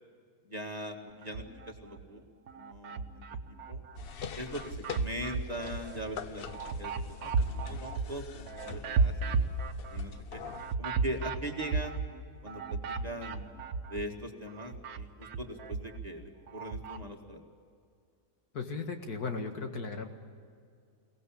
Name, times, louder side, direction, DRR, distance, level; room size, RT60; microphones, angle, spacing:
voice 1, 0.4-2.3 2.5-3.2 3.7-3.8 4.4-9.5 9.9-10.4 10.8-12.0 12.4-13.5 13.9-17.4, right 1 dB, 25° right, 2 dB, 1.9 m, -41 dB
sound 1, 1.2-2.0 2.5-4.1 4.5-14.2 14.5-17.1, right 4 dB, 70° right, 1.5 m, -34 dB
sound 2, 3.9-10.7, left 7 dB, 50° left, 0.7 m, -44 dB
voice 2, 18.5-20.1, left 4 dB, 75° left, 5 dB, 2.3 m, -36 dB
22.5 x 18.5 x 8.7 m, 2.3 s
omnidirectional pair, 1.7 m